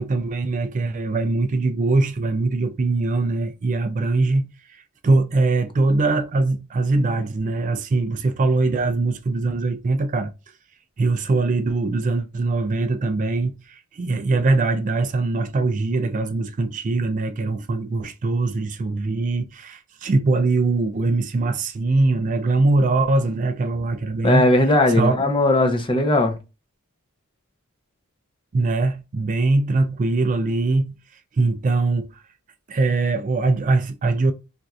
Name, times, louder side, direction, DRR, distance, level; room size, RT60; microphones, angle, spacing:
voice 1, 0.0-4.4 4.7-10.3 11.0-24.5 24.9-25.1 28.5-30.9 31.3-32.1 32.7-34.3, right 3 dB, 35° right, 0.3 m, -22 dB
voice 2, 24.2-26.3, left 2 dB, 25° left, 0.6 m, -18 dB
4.3 x 2.5 x 2.3 m
head